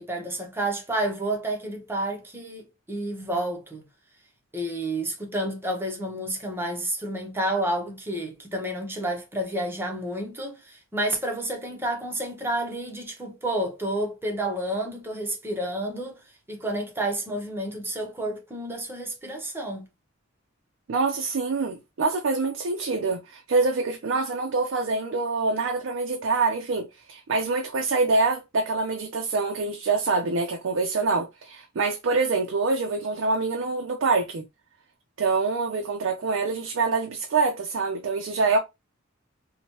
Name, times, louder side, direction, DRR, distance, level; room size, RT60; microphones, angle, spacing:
voice 1, 0.0-3.8 4.5-16.2 16.5-19.8, right 1 dB, 10° right, 0.7 m, -30 dB
voice 2, 20.9-34.4 35.2-38.6, right 3 dB, 65° right, 0.4 m, -25 dB
2.9 x 2.1 x 2.9 m
head